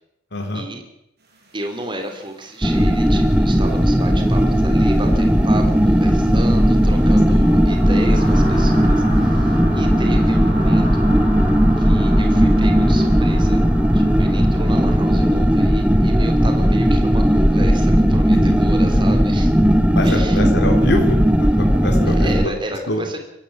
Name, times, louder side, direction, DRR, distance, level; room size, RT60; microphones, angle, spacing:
voice 1, 0.3-0.6 7.3-7.4 18.3-18.6 19.9-21.2 21.6-22.3 22.9-23.1, left 1 dB, 60° left, 2 dB, 3.6 m, -24 dB
sound 1, 1.3-19.1, equal, 55° right, 6.4 m, -37 dB
voice 2, 1.5-11.0 11.8-13.6 13.9-19.5 20.0-20.4 22.0-23.2, right 1 dB, 25° right, 5 dB, 3.1 m, -32 dB
sound 2, 2.6-22.5, equal, 5° right, 1.1 m, -16 dB
23.5 x 14.5 x 8.6 m, 0.80 s
head